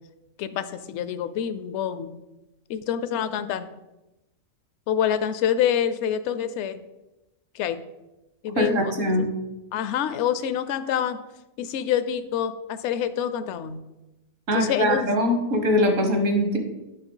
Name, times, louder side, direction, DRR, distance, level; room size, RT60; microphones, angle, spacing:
voice 1, 0.4-2.2 2.7-3.7 4.9-6.8 7.5-7.8 8.4-8.9 9.2-9.3 9.7-11.2 11.6-13.8 14.5-15.1, left 9 dB, 65° left, 12 dB, 0.8 m, -26 dB
voice 2, 8.6-9.3 14.5-16.6, equal, 65° right, 4 dB, 1.7 m, -22 dB
9.7 x 5.5 x 3.9 m, 1.0 s
omnidirectional pair, 1.4 m